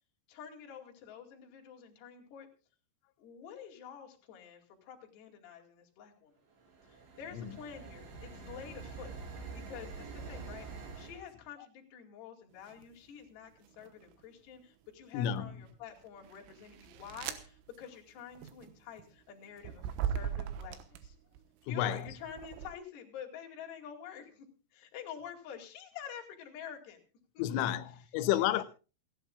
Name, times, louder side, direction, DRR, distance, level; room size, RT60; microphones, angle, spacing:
voice 1, 0.3-2.5 3.2-6.4 6.9-9.1 9.5-10.7 10.9-21.2 21.7-24.5 24.7-27.0 27.3-27.7, left 8 dB, 60° left, 4.2 m, -48 dB
sound 1, 6.5-11.2, right 4 dB, 70° right, 7.3 m, -46 dB
sound 2, 12.7-13.0 13.6-14.4 15.0-21.4 22.0-22.7, right 9 dB, 90° right, 3.7 m, -40 dB
voice 2, 15.1-15.6 21.7-22.1 27.4-28.6, left 11 dB, 90° left, 3.4 m, -31 dB
28.5 x 11.5 x 2.3 m
omnidirectional pair, 5.6 m